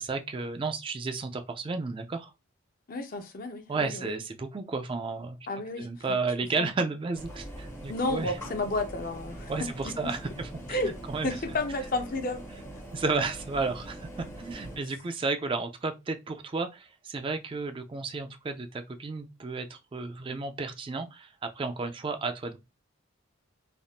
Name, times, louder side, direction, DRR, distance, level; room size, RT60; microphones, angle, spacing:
voice 1, 0.0-2.3 3.7-5.4 5.8-8.4 9.5-11.4 12.9-22.6, right 3 dB, 25° right, 0.3 m, -33 dB
voice 2, 2.9-4.2 5.5-5.9 6.6-6.7 7.9-9.5 10.0-10.1 10.7-10.9 11.2-12.4, left 2 dB, 40° left, 0.6 m, -31 dB
sound 1, 7.1-14.8, right 1 dB, 10° left, 0.9 m, -43 dB
3.4 x 2.5 x 2.3 m
head